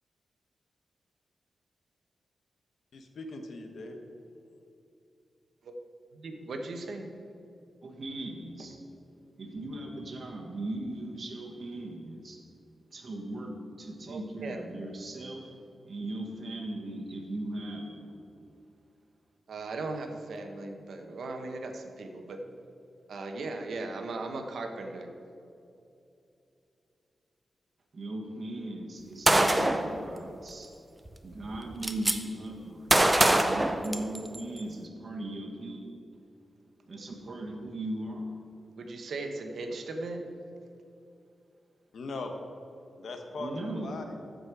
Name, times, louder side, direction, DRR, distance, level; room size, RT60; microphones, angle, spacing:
voice 1, 2.9-4.0 41.9-42.3 43.0-44.1, left 3 dB, 65° left, 4 dB, 1.0 m, -39 dB
voice 2, 6.1-7.1 14.1-14.6 19.5-22.4 23.1-25.1 37.3-37.4 38.8-40.2, right 2 dB, 70° right, 4 dB, 1.0 m, -38 dB
voice 3, 7.8-8.8 9.4-12.4 12.9-15.5 15.8-18.2 27.9-30.7 31.2-33.0 33.3-35.8 36.9-38.3 43.4-44.0, right 1 dB, 40° right, -1 dB, 1.5 m, -38 dB
Gunshot gunfire, 29.3-29.9 31.1-31.2 31.4-32.1 32.9-34.4, right 1 dB, 15° right, 0.6 m, -23 dB
14.5 x 5.3 x 4.7 m, 2.7 s
wide cardioid pair, 140°, 0 cm